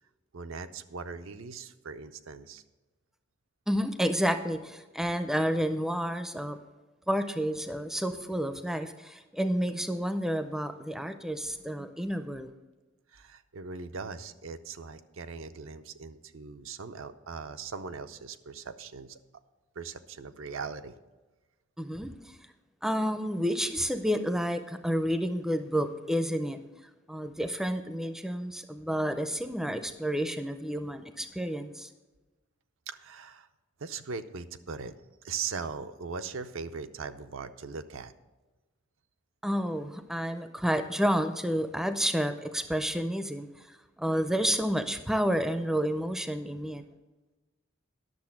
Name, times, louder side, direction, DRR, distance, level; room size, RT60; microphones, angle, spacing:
voice 1, 0.3-2.6 13.1-19.2 19.8-20.9 32.9-33.5 33.8-34.9 35.2-38.1, right 5 dB, 80° right, 9 dB, 0.6 m, -40 dB
voice 2, 3.7-6.6 7.1-12.5 21.8-22.4 22.8-26.6 27.1-31.9 39.4-43.7 44.0-46.8, equal, ahead, 8 dB, 0.4 m, -30 dB
10.5 x 6.8 x 5.9 m, 1.2 s
head